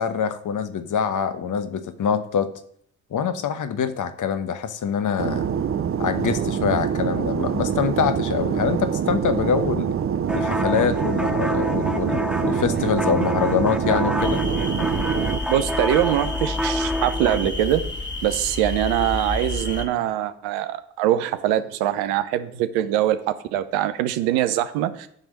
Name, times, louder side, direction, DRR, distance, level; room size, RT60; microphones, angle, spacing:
voice 1, 0.0-2.5 3.1-5.5 6.0-9.9 10.3-14.4, left 7 dB, 55° left, 10 dB, 1.0 m, -24 dB
Fixed-wing aircraft airplane, 5.2-15.4, right 8 dB, 35° right, 0.5 m, -25 dB
sound 1, 10.3-17.5, left 1 dB, ahead, 0.7 m, -28 dB
sound 2, 14.2-19.9, left 2 dB, 30° left, 1.6 m, -30 dB
voice 2, 15.5-17.8 18.2-25.1, right 12 dB, 80° right, 11 dB, 0.7 m, -23 dB
9.7 x 3.6 x 6.6 m, 0.66 s
hypercardioid pair, 40°, 37 cm